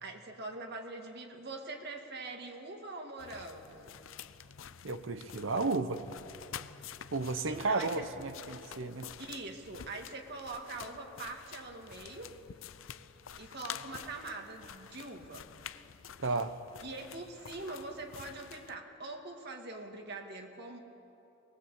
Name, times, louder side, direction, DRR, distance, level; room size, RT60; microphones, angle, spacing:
voice 1, 0.0-4.0 7.5-8.1 9.2-12.3 13.4-15.5 16.8-20.8, right 2 dB, 55° right, 3 dB, 2.2 m, -43 dB
sound 1, 3.2-18.8, left 8 dB, 90° left, 0.6 m, -49 dB
voice 2, 4.8-6.1 7.1-9.1 16.2-16.5, right 3 dB, 75° right, 10 dB, 0.9 m, -33 dB
21.0 x 20.0 x 8.3 m, 2.9 s
head